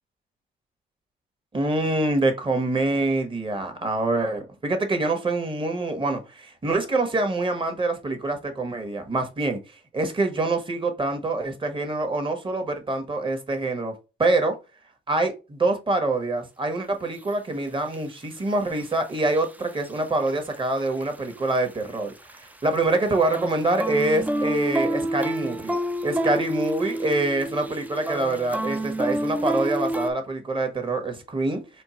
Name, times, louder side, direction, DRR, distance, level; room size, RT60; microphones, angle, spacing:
voice 1, 1.5-9.6 9.9-13.9 14.2-14.5 15.1-25.8 26.0-31.8, right 2 dB, 25° right, 1.2 m, -25 dB
sound 1, 17.1-17.2 17.9-18.0 18.8-20.0 20.3-20.6 20.9-22.4 22.8-30.1, right 1 dB, 10° right, 0.4 m, -28 dB
4.4 x 2.2 x 4.2 m
cardioid pair, 90°, 20 cm